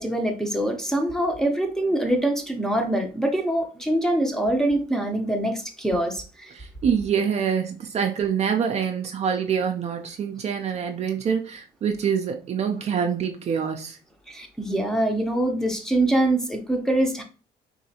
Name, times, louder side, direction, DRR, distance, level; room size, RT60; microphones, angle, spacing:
voice 1, 0.0-6.5 14.3-17.2, right 1 dB, 5° left, 0.7 m, -24 dB
voice 2, 6.5-14.0, right 7 dB, 40° right, 0.4 m, -25 dB
4.1 x 2.7 x 2.8 m
cardioid pair, 110°, 17 cm